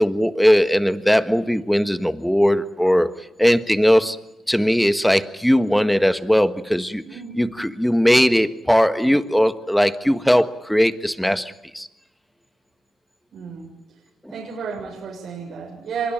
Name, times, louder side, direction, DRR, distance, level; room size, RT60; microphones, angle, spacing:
voice 1, 0.0-3.1 3.4-4.2 4.5-7.0 7.4-11.9, equal, ahead, 1.5 m, -19 dB
voice 2, 7.0-7.6 13.3-13.7 14.3-16.1, right 6 dB, 65° right, 6.8 m, -32 dB
24.5 x 22.5 x 9.2 m
cardioid pair, 90°, 0 cm